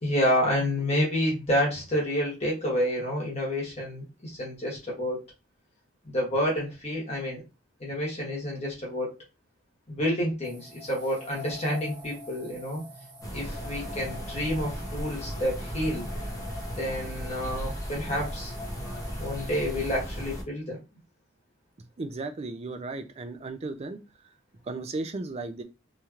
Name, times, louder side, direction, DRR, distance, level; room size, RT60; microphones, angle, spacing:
voice 1, 0.0-5.2 6.0-7.4 7.8-9.1 9.9-12.8 13.3-16.1 16.8-18.5 19.2-20.8, equal, 35° left, -3 dB, 1.3 m, -29 dB
sound 1, 10.4-20.0, left 1 dB, 60° right, 1.1 m, -45 dB
sound 2, 13.2-20.4, equal, 15° left, 0.7 m, -36 dB
voice 2, 21.8-24.0 24.7-25.6, right 3 dB, 30° right, 7 dB, 0.4 m, -35 dB
3.0 x 2.8 x 2.4 m, 0.27 s
head